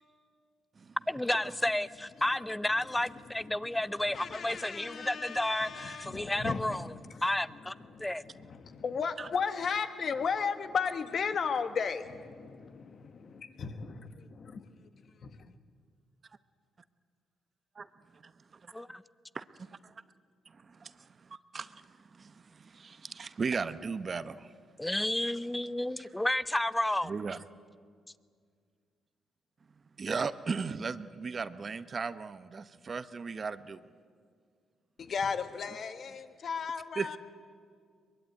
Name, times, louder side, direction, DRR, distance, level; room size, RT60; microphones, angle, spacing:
voice 1, 1.1-6.9 7.2-7.7 8.0-8.2 18.7-19.0 24.8-27.1, left 1 dB, 10° left, 16 dB, 0.7 m, -31 dB
voice 2, 4.1-6.9 7.9-14.7 15.2-15.5 35.0-37.2, left 6 dB, 50° left, 9 dB, 1.6 m, -35 dB
voice 3, 19.3-19.9 20.5-24.5 27.0-27.4 30.0-33.8 37.0-37.2, right 5 dB, 40° right, 13 dB, 0.9 m, -37 dB
23.0 x 22.0 x 9.4 m, 2.1 s
cardioid pair, 90°, 0 cm